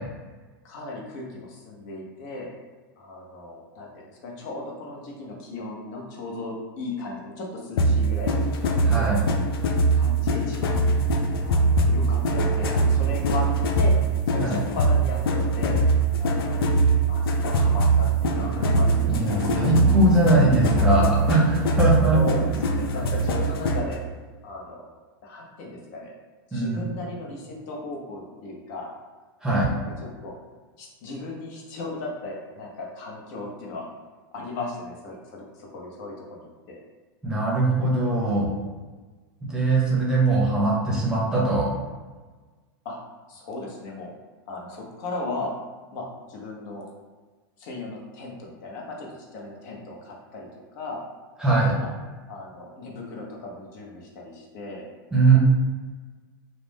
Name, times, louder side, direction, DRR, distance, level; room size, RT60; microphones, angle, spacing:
voice 1, 0.6-2.5 3.0-9.3 9.9-10.8 11.4-13.5 13.7-13.9 14.3-15.8 16.2-16.7 17.0-19.0 21.9-24.0 24.4-24.8 25.2-26.1 26.5-28.9 29.6-30.4 30.8-33.9 34.3-36.8 42.8-43.0 43.3-44.1 44.5-45.5 45.9-46.9 47.6-51.0 51.7-51.9 52.3-54.8, left 2 dB, 55° left, -1 dB, 0.7 m, -36 dB
sound 1, 7.8-24.0, right 2 dB, 85° left, 0.4 m, -22 dB
voice 2, 8.9-9.2 14.4-14.6 19.1-22.2 26.5-26.9 29.4-29.7 37.2-38.5 39.5-41.7 51.4-51.8 55.1-55.4, right 2 dB, 5° right, -6 dB, 0.7 m, -21 dB
sound 2, 17.9-23.5, right 2 dB, 60° right, 0.4 m, -32 dB
2.4 x 2.1 x 3.3 m, 1.4 s
hypercardioid pair, 130°, 12 cm